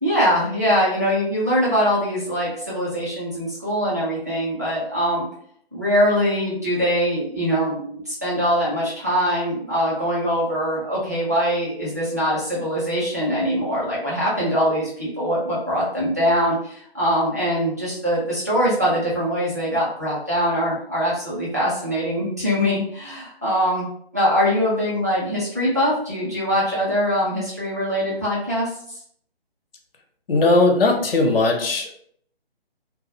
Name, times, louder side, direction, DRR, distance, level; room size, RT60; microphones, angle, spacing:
voice 1, 0.0-5.2 5.7-23.9 24.1-28.7, equal, 20° right, -8 dB, 0.4 m, -22 dB
voice 2, 30.3-31.9, left 2 dB, 65° left, 3 dB, 0.6 m, -18 dB
2.3 x 2.0 x 2.6 m, 0.65 s
figure-of-eight pair, 150°, 31 cm